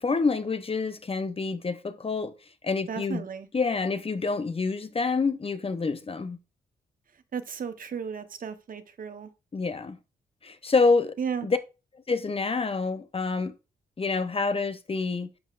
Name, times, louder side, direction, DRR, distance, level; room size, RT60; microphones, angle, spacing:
voice 1, 0.0-2.3 2.6-3.2 3.5-6.4 9.5-10.0 10.4-11.1 11.4-11.6 12.1-13.6 14.0-15.3, left 4 dB, 35° left, 0.8 m, -27 dB
voice 2, 2.9-3.5 7.3-9.3 11.2-11.5, right 7 dB, 55° right, 1.0 m, -34 dB
10.5 x 5.6 x 2.5 m
cardioid pair, 55°, 17 cm